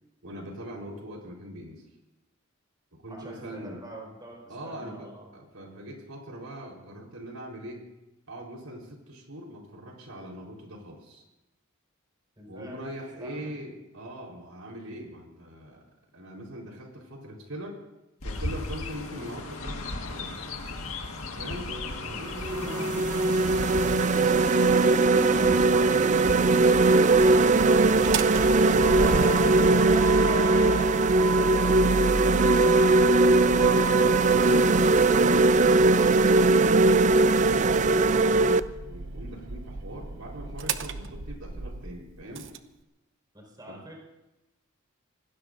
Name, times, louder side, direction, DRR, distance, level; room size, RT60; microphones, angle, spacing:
voice 1, 0.2-1.8 3.0-3.8 4.5-7.9 8.3-11.2 12.5-15.8 16.1-17.8 18.2-20.3 21.4-21.7 22.0-23.6 38.9-42.5 43.7-43.8, equal, 90° right, 0 dB, 4.2 m, -42 dB
voice 2, 3.1-5.3 12.4-12.8 13.2-13.5 22.6-22.9 25.4-25.9 27.8-32.7 43.3-44.0, right 1 dB, 20° right, -2 dB, 4.8 m, -43 dB
Chirp tweet, 18.2-30.9, left 2 dB, 90° left, 1.7 m, -36 dB
sound 1, 21.7-21.9 22.4-38.6, right 3 dB, 35° right, 0.4 m, -20 dB
Motor vehicle (road), 27.9-42.6, right 3 dB, 60° right, 0.9 m, -33 dB
26.0 x 19.0 x 2.6 m, 1.0 s
head